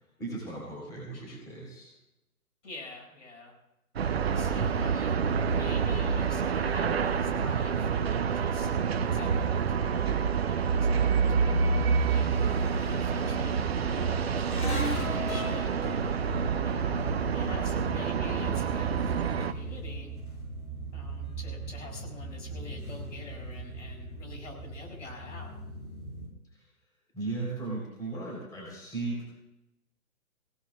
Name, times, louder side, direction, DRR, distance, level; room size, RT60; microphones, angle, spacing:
voice 1, 0.2-1.9 27.1-29.2, right 3 dB, 10° left, -4 dB, 3.7 m, -36 dB
voice 2, 2.6-3.5 4.3-8.7 9.1-12.5 12.8-14.4 14.9-15.8 16.6-20.1 20.9-25.5, left 2 dB, 55° left, 0 dB, 6.1 m, -46 dB
sound 1, 4.0-19.5, right 6 dB, 45° right, 0.7 m, -28 dB
sound 2, 11.9-26.3, right 1 dB, 75° left, 7.8 m, -38 dB
25.0 x 17.5 x 2.4 m, 0.88 s
figure-of-eight pair, 135°, 44 cm